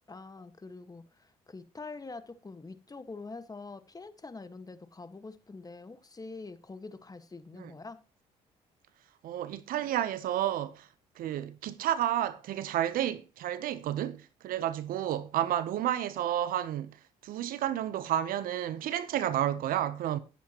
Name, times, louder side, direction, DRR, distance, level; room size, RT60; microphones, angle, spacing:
voice 1, 0.1-8.0, left 3 dB, 25° left, 1.6 m, -45 dB
voice 2, 9.2-10.9 11.2-17.0 17.2-20.2, right 11 dB, 70° right, 0.9 m, -31 dB
18.5 x 8.2 x 3.0 m
supercardioid pair, 60°, 15 cm